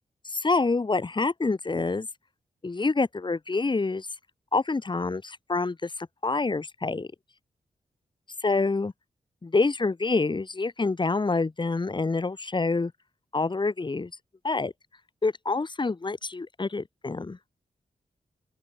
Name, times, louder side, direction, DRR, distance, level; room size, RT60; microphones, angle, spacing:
voice 1, 0.2-2.1 2.6-4.1 4.5-7.1 8.4-8.9 9.4-12.9 13.3-14.1 14.4-14.7 15.2-17.4, left 3 dB, 35° left, 1.4 m, -27 dB
open air
wide cardioid pair, 80°, 14 cm